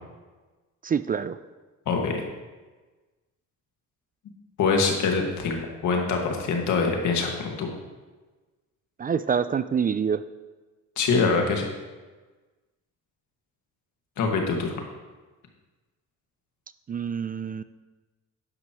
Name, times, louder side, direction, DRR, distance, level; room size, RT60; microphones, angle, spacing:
voice 1, 0.8-1.4 9.0-10.2 16.9-17.6, right 7 dB, 30° right, 13 dB, 0.4 m, -26 dB
voice 2, 1.9-2.2 4.6-7.7 11.0-11.7 14.2-14.7, left 4 dB, 75° left, 2 dB, 1.9 m, -24 dB
11.5 x 9.6 x 3.1 m, 1.3 s
cardioid pair, 90°, 30 cm